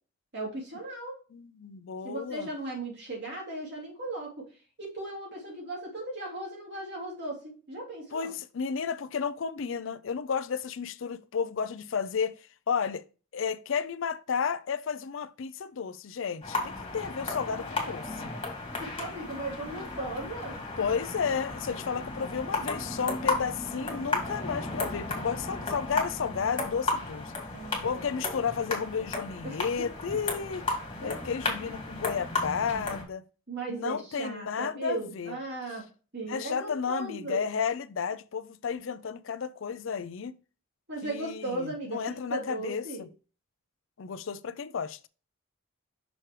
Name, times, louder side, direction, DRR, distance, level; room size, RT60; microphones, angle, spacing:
voice 1, 0.3-1.2 2.0-4.5 4.8-8.3 18.8-20.6 27.5-28.2 29.4-29.9 31.0-31.3 33.5-37.5 40.9-43.1, right 2 dB, 55° right, 3.2 m, -37 dB
voice 2, 1.3-2.5 8.1-12.4 12.7-13.0 13.3-18.3 20.8-27.3 27.8-30.6 31.0-33.2 33.7-35.3 36.2-40.4 41.0-43.1 44.0-45.1, left 6 dB, 70° left, 0.5 m, -32 dB
sound 1, 16.4-33.0, left 3 dB, 25° left, 2.1 m, -34 dB
6.2 x 5.9 x 3.2 m
head